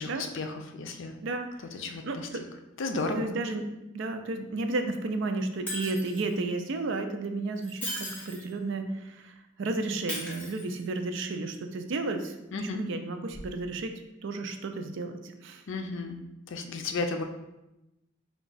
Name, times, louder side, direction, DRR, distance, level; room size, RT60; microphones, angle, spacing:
voice 1, 0.0-1.1 1.7-2.3 2.8-3.3 12.5-12.8 15.7-16.2 16.5-17.2, left 3 dB, 65° left, 5 dB, 0.5 m, -33 dB
voice 2, 2.0-2.4 3.1-3.7 3.9-12.4 12.6-13.9 14.2-15.6, right 2 dB, 65° right, 6 dB, 0.5 m, -32 dB
Shatter, 5.7-6.3 7.6-8.5 10.1-11.1 13.3-13.4, equal, 10° left, 1.2 m, -37 dB
4.6 x 2.3 x 3.9 m, 0.94 s
head